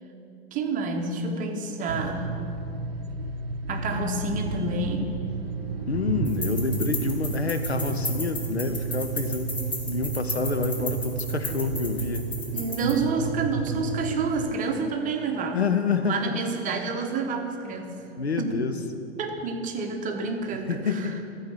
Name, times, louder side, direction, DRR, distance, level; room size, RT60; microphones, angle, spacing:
voice 1, 0.5-2.4 3.7-5.2 12.5-15.7 16.1-17.9 18.4-18.5 19.2-21.1, right 3 dB, 25° right, 4 dB, 1.0 m, -29 dB
sound 1, 1.9-14.6, right 6 dB, 70° right, 0.6 m, -32 dB
Bowed string instrument, 5.0-9.1, equal, 40° left, 1.0 m, -45 dB
voice 2, 5.9-9.6 9.9-12.2 15.5-16.4 18.2-18.8 20.7-21.2, left 4 dB, 90° left, 8 dB, 0.8 m, -28 dB
sound 2, 6.3-12.9, left 2 dB, 15° left, 1.5 m, -34 dB
13.5 x 4.8 x 7.3 m, 2.7 s
figure-of-eight pair, 95°, 31 cm